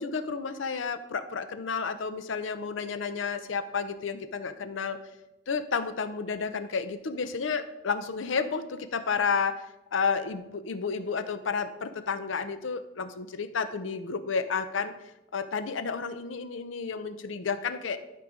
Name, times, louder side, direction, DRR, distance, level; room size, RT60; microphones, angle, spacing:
voice 1, 0.0-5.0 5.5-9.6 9.9-14.9 15.3-18.0, left 5 dB, 90° left, 10 dB, 0.6 m, -31 dB
11.5 x 3.8 x 5.0 m, 0.96 s
head